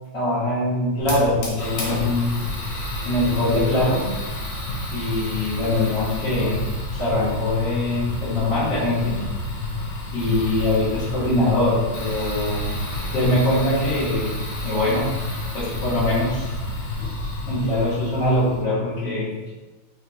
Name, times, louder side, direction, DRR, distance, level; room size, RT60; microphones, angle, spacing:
voice 1, 0.1-2.3 3.1-4.1 4.9-6.7 6.9-9.2 10.1-12.7 13.1-14.4 14.6-15.1 15.5-16.5 17.5-19.5, left 1 dB, 60° left, -10 dB, 1.9 m, -22 dB
Fire, 1.0-18.6, left 1 dB, 80° left, 1.6 m, -30 dB
4.3 x 2.9 x 2.5 m, 1.2 s
omnidirectional pair, 2.2 m